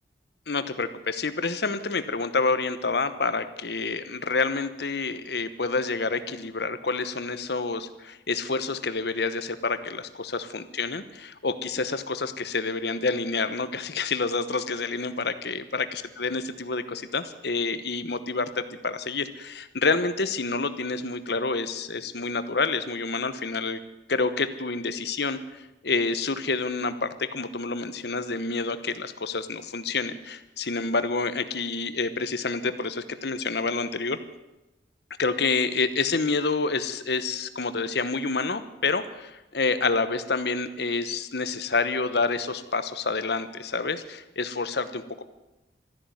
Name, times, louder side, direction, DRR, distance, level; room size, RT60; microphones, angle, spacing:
voice 1, 0.5-23.8 24.1-34.2 35.2-45.2, left 4 dB, 60° left, 12 dB, 1.0 m, -28 dB
13.0 x 11.5 x 9.4 m, 0.98 s
head